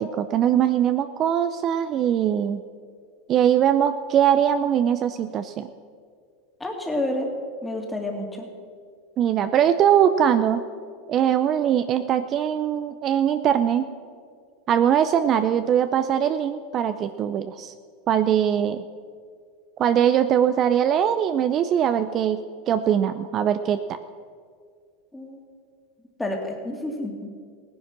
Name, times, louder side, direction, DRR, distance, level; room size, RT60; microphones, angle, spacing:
voice 1, 0.0-2.6 3.3-5.7 9.2-10.6 11.1-13.9 14.7-17.7 18.1-18.8 19.8-22.4 22.7-23.8, right 9 dB, 40° right, 10 dB, 0.6 m, -21 dB
voice 2, 6.6-7.3 7.6-8.4 25.1-25.4 26.2-27.3, left 1 dB, 10° left, 2 dB, 2.6 m, -29 dB
16.5 x 10.5 x 6.0 m, 2.1 s
hypercardioid pair, 110°, 0 cm